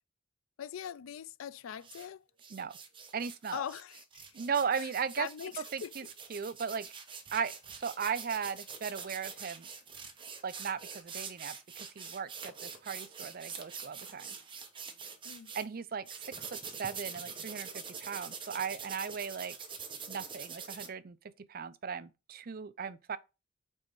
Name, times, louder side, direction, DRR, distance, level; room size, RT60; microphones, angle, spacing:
voice 1, 0.6-2.2 3.5-4.3 4.8-4.9 5.2-5.9 15.2-15.5, left 9 dB, 85° left, 0.4 m, -41 dB
sound 1, 1.8-2.1 2.4-15.6 16.1-20.9, right 6 dB, 25° right, 1.0 m, -45 dB
voice 2, 3.1-3.6 4.3-5.3 5.7-6.0 6.3-6.9 7.3-9.7 10.4-14.4 15.5-16.2 16.5-19.6 20.1-23.2, right 6 dB, 45° right, 0.5 m, -37 dB
5.5 x 4.1 x 5.2 m
head